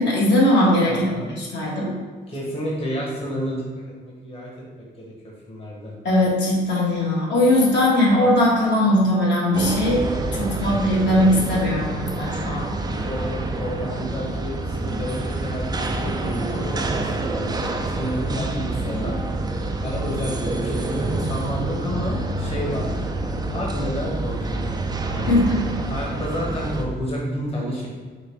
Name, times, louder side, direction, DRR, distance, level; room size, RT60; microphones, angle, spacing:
voice 1, 0.0-1.0 1.4-1.9 6.0-12.8 25.3-25.6, left 1 dB, 65° left, -5 dB, 1.4 m, -19 dB
voice 2, 0.9-1.3 2.3-4.5 5.0-5.9 10.4-10.7 13.0-19.2 19.8-22.9 23.5-24.8 25.1-25.4 25.9-27.9, equal, 30° left, -4 dB, 1.1 m, -30 dB
sound 1, 9.5-26.8, right 2 dB, 20° right, 0.4 m, -27 dB
4.9 x 2.2 x 4.5 m, 1.5 s
cardioid pair, 90°, 20 cm